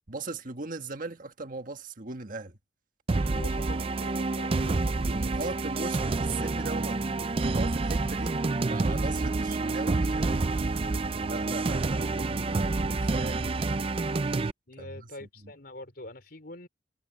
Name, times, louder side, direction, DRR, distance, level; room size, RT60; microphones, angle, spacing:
voice 1, 0.1-2.6 3.3-3.5 5.0-10.3 11.2-13.6 14.8-15.5, right 3 dB, 45° right, 1.5 m, -39 dB
sound 1, 3.1-14.5, right 3 dB, 30° right, 0.4 m, -28 dB
voice 2, 3.3-5.0 14.7-16.7, left 1 dB, 55° left, 4.0 m, -44 dB
head